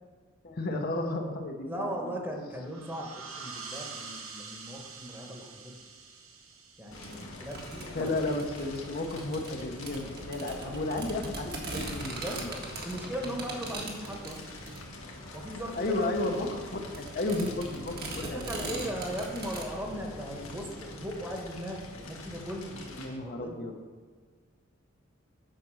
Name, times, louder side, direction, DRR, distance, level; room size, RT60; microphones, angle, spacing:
voice 1, 0.4-2.1 7.9-12.5 15.8-16.5 16.7-18.6 23.0-23.7, left 2 dB, 50° left, 3 dB, 1.0 m, -33 dB
voice 2, 1.7-5.7 6.8-8.1 10.6-10.9 12.2-14.4 15.3-16.1 18.2-23.6, equal, 10° right, 1 dB, 1.3 m, -38 dB
sound 1, 2.6-8.0, right 4 dB, 85° right, 1.2 m, -46 dB
Fire, 6.9-23.1, left 1 dB, 75° left, 1.6 m, -44 dB
sound 2, 6.9-19.6, right 2 dB, 50° right, 1.5 m, -41 dB
9.0 x 6.0 x 6.3 m, 1.5 s
head